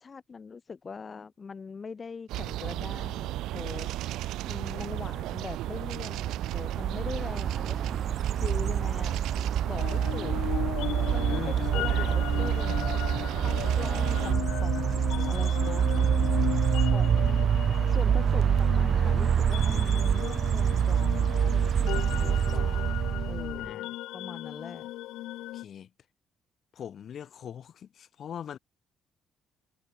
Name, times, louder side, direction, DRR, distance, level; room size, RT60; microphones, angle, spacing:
voice 1, 0.0-4.0 4.5-10.4 11.0-12.8 13.4-15.9 16.9-17.5 17.8-22.9 23.3-23.9 24.1-24.9, left 5 dB, 30° left, 1.3 m, -42 dB
sound 1, 2.3-14.3, right 15 dB, 85° right, 0.7 m, -34 dB
sound 2, 6.1-23.7, right 8 dB, 50° right, 0.8 m, -26 dB
sound 3, 9.8-25.6, left 16 dB, 90° left, 1.6 m, -36 dB
voice 2, 11.3-12.2 23.6-23.9 25.5-25.9 26.7-28.6, left 9 dB, 50° left, 3.5 m, -41 dB
cardioid pair, 120°, 0 cm